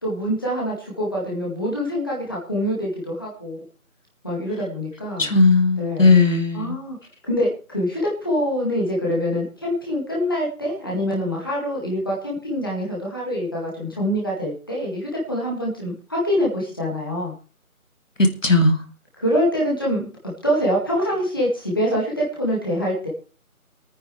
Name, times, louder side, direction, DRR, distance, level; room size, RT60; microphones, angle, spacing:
voice 1, 0.0-3.6 4.2-5.3 5.8-6.1 6.5-7.0 7.3-17.3 19.2-23.1, equal, 15° left, -4 dB, 2.0 m, -25 dB
voice 2, 5.2-6.8 18.2-18.8, left 3 dB, 60° left, 6 dB, 2.3 m, -17 dB
27.0 x 9.6 x 3.3 m, 0.35 s
figure-of-eight pair, 175°, 44 cm